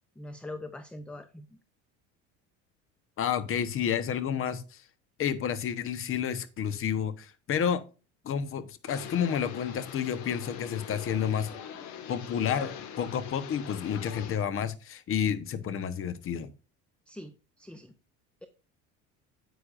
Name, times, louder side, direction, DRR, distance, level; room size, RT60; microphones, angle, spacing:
voice 1, 0.2-1.5 17.1-17.9, left 1 dB, 5° left, 0.6 m, -43 dB
voice 2, 3.2-4.8 5.2-7.8 8.2-11.5 12.1-16.5, left 8 dB, 45° left, 1.1 m, -30 dB
sound 1, 8.9-14.4, left 8 dB, 70° left, 1.8 m, -42 dB
9.9 x 8.2 x 2.5 m
cardioid pair, 120°, 31 cm